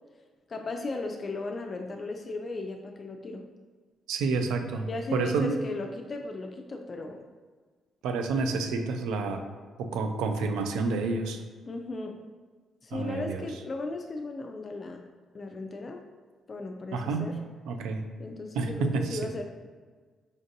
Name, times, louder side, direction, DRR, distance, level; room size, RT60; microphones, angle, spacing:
voice 1, 0.5-3.4 4.8-7.2 11.7-12.2 12.8-15.0 15.3-16.0 16.5-17.4 18.2-19.4, left 2 dB, 40° left, 4 dB, 0.3 m, -36 dB
voice 2, 4.1-5.6 8.0-9.4 9.8-11.4 12.9-13.5 16.9-17.3 17.7-18.1 18.5-19.2, right 4 dB, 90° right, 5 dB, 0.4 m, -29 dB
5.1 x 2.5 x 2.7 m, 1.5 s
cardioid pair, 90°, 0 cm